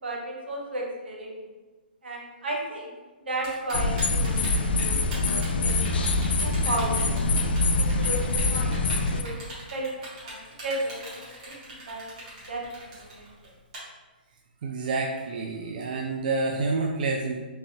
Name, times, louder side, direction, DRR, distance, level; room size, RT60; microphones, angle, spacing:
voice 1, 0.0-1.3 2.0-2.9 3.3-6.0 6.4-7.2 7.8-9.3 9.7-12.1 12.5-12.6 13.0-13.3, right 1 dB, 90° right, -1 dB, 1.0 m, -34 dB
Typing, 3.4-13.8, right 2 dB, 40° right, 1.5 m, -41 dB
sound 1, 3.7-9.2, left 2 dB, 75° left, 0.3 m, -24 dB
voice 2, 14.6-17.4, right 3 dB, 55° right, 1 dB, 0.3 m, -28 dB
3.3 x 3.1 x 2.9 m, 1.2 s
hypercardioid pair, 150°, 6 cm